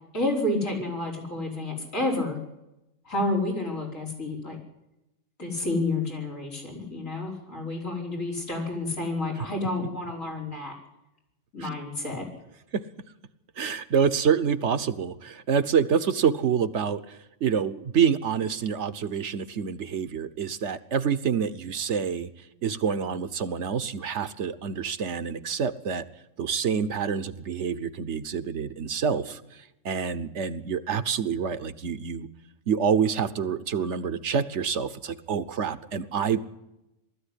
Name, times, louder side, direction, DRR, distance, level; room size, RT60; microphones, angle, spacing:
voice 1, 0.1-2.4 3.0-4.6 5.4-10.7 11.5-12.3, left 2 dB, 85° left, 1 dB, 5.3 m, -30 dB
voice 2, 13.6-22.3 22.6-26.1 26.4-29.4 29.8-32.3 32.7-36.4, right 7 dB, 65° right, 12 dB, 1.2 m, -27 dB
20.0 x 13.5 x 10.0 m, 0.92 s
omnidirectional pair, 1.3 m